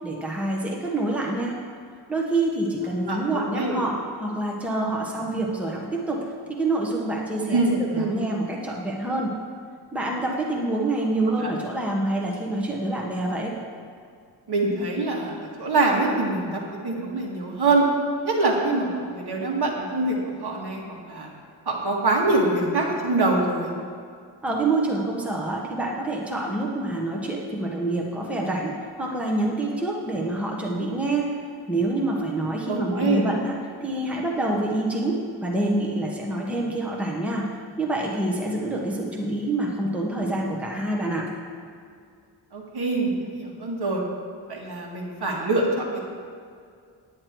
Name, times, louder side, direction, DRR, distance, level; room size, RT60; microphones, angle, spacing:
voice 1, 0.0-1.6 2.1-6.2 6.6-9.3 9.9-13.5 24.4-31.3 31.7-37.5 37.8-41.3, right 2 dB, 5° right, -2 dB, 1.1 m, -26 dB
voice 2, 3.1-3.8 7.5-8.2 11.4-11.5 14.5-17.8 18.2-21.3 21.7-23.7 32.7-33.3 42.5-44.0 44.5-46.0, right 2 dB, 55° right, -2 dB, 2.0 m, -24 dB
9.7 x 9.6 x 4.6 m, 2.2 s
wide cardioid pair, 135°, 47 cm